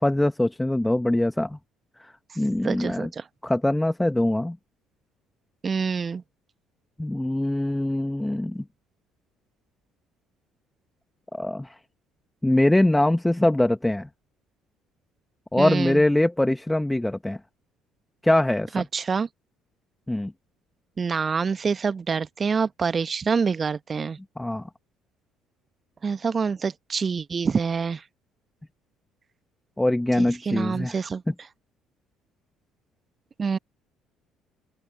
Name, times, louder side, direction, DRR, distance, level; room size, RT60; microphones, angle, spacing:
voice 1, 0.0-1.6 2.4-3.1 3.4-4.6 7.0-8.6 11.3-11.7 12.4-14.1 15.5-17.4 18.2-18.9 20.1-20.3 24.4-24.6 29.8-31.3, left 1 dB, 10° left, 1.9 m, -23 dB
voice 2, 2.6-3.2 5.6-6.2 15.6-16.0 18.7-19.3 21.0-24.2 26.0-28.0 30.2-31.2 33.4-33.6, right 5 dB, 35° right, 1.6 m, -26 dB
open air
figure-of-eight pair, 50°, 0 cm